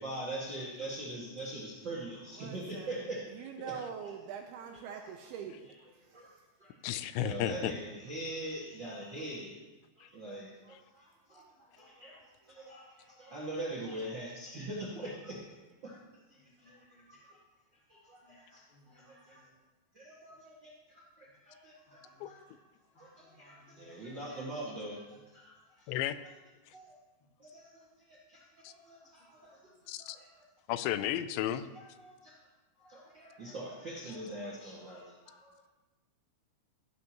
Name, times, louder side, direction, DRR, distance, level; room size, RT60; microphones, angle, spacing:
voice 1, 0.0-3.2 3.7-3.8 6.1-6.3 6.6-6.7 7.2-9.5 10.0-10.5 11.3-11.4 11.8-12.2 12.5-15.4 15.8-16.0 16.3-17.4 17.9-18.6 18.9-19.4 19.9-22.4 23.0-26.0 26.2-26.3 26.7-27.0 27.4-29.7 30.0-30.4 31.7-32.3 32.8-35.7, right 1 dB, 55° right, -5 dB, 1.3 m, -43 dB
voice 2, 2.4-3.0 3.3-5.7, right 7 dB, 80° right, 3 dB, 2.4 m, -43 dB
voice 3, 4.8-5.3 5.8-6.2 10.6-12.3 12.6-12.7 15.9-16.0 16.3-17.0 18.2-18.4 18.7-19.5 21.9-22.3 22.9-24.1 29.6-29.7, equal, 50° left, -5 dB, 1.6 m, -65 dB
voice 4, 6.8-7.7 10.0-10.1 22.2-22.3 25.9-26.2 29.9-30.2 30.7-31.7, left 12 dB, 90° left, 13 dB, 2.9 m, -33 dB
14.5 x 11.0 x 3.0 m, 1.1 s
omnidirectional pair, 5.1 m